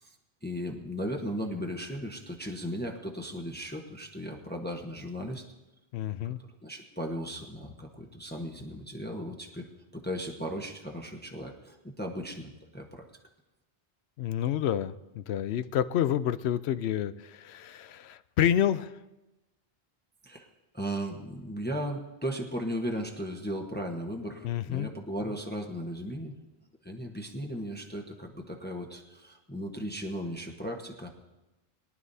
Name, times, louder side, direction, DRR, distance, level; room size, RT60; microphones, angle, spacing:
voice 1, 0.4-5.4 6.2-6.3 6.6-9.7 9.9-13.0 20.2-20.5 20.7-26.3 26.8-31.1, equal, 10° left, 1 dB, 1.0 m, -36 dB
voice 2, 5.9-6.4 14.2-18.9 24.4-24.9, left 10 dB, 85° left, 14 dB, 0.8 m, -29 dB
22.5 x 11.0 x 2.7 m, 1.0 s
omnidirectional pair, 1.1 m